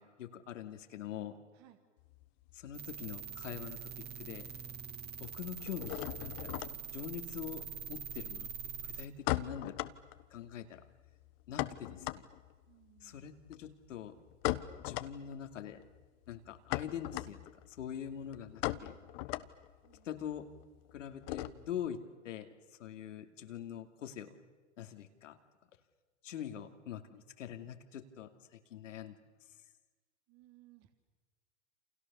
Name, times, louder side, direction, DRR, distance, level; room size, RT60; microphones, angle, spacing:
voice 1, 0.0-1.4 2.5-3.8 4.2-4.5 5.2-6.5 6.9-8.5 8.8-9.8 10.3-10.8 11.5-12.3 13.0-14.2 14.8-15.8 16.3-17.4 17.7-19.0 20.0-20.5 20.9-22.0 22.2-22.5 22.8-24.4 24.8-25.4 26.2-29.1, left 9 dB, 80° left, 7 dB, 2.7 m, -44 dB
sound 1, 2.0-3.6 3.9-4.6 4.8-21.9, left 17 dB, 55° left, 1.4 m, -40 dB
sound 2, 2.7-9.1, right 8 dB, 25° right, 1.5 m, -44 dB
voice 2, 12.7-13.3 19.8-20.1 30.3-30.9, right 15 dB, 45° right, 6 dB, 3.1 m, -62 dB
29.5 x 27.5 x 7.1 m, 1.3 s
hypercardioid pair, 110°, 38 cm